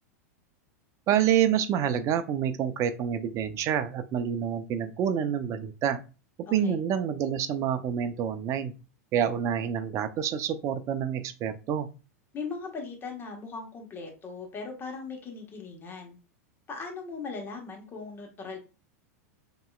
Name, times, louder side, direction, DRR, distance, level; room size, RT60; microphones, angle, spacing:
voice 1, 1.1-6.0 6.5-8.7 9.1-11.9, right 9 dB, 35° right, 11 dB, 0.6 m, -27 dB
voice 2, 12.3-16.2 16.7-18.6, left 4 dB, 25° left, 1 dB, 1.4 m, -39 dB
5.3 x 2.9 x 2.4 m, 0.32 s
hypercardioid pair, 120°, 9 cm